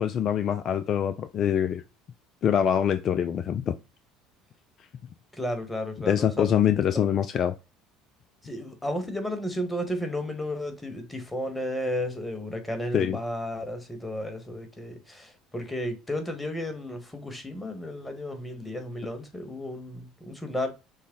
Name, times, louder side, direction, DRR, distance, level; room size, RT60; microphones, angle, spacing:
voice 1, 0.0-1.8 2.4-3.7 6.1-7.5 12.9-13.2, left 9 dB, 50° left, 0.4 m, -24 dB
voice 2, 5.3-6.6 6.9-7.2 8.4-20.7, left 1 dB, 10° left, 1.4 m, -33 dB
6.3 x 2.2 x 3.7 m
hypercardioid pair, 70°, 0 cm